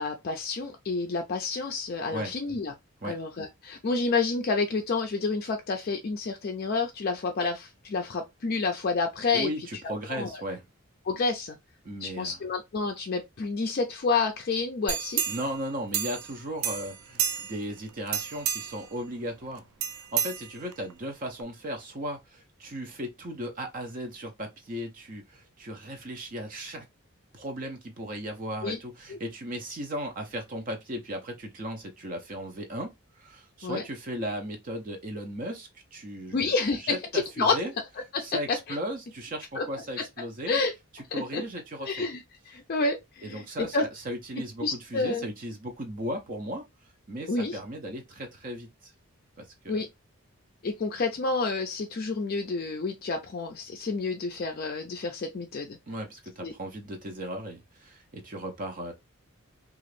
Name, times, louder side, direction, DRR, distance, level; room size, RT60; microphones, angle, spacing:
voice 1, 0.0-2.7 3.0-9.5 10.1-10.4 11.0-11.6 12.0-15.2 28.6-28.8 29.1-29.2 33.6-33.8 36.3-37.6 38.1-38.8 39.6-39.7 40.0-40.1 40.5-40.7 41.1-41.4 41.8-42.2 42.5-43.9 44.6-45.3 47.3-47.6 49.7-49.9 50.6-55.8 56.4-56.5, left 4 dB, 45° left, 0.4 m, -29 dB
voice 2, 9.3-10.6 11.8-12.4 15.3-19.7 19.9-26.8 27.3-37.7 38.2-40.6 40.9-42.0 43.2-46.7 47.1-48.9 49.4-49.8 55.9-58.9, equal, 40° right, 0.5 m, -36 dB
sound 1, 14.9-16.4 16.6-17.7 18.1-18.9 19.8-20.9 21.4-21.5, right 9 dB, 85° right, 0.4 m, -31 dB
2.9 x 2.4 x 3.1 m
head